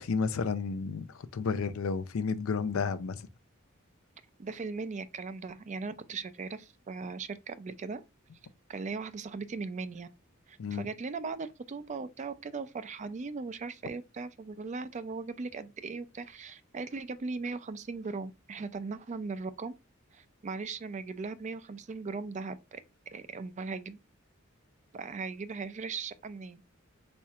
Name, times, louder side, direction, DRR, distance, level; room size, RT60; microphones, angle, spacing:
voice 1, 0.0-3.3 10.6-10.9, left 5 dB, 80° left, 0.5 m, -32 dB
voice 2, 4.4-8.0 8.7-10.1 10.5-19.7 20.1-22.8 23.1-24.0 24.9-26.6, right 4 dB, 35° right, 0.4 m, -38 dB
4.3 x 4.2 x 2.4 m
head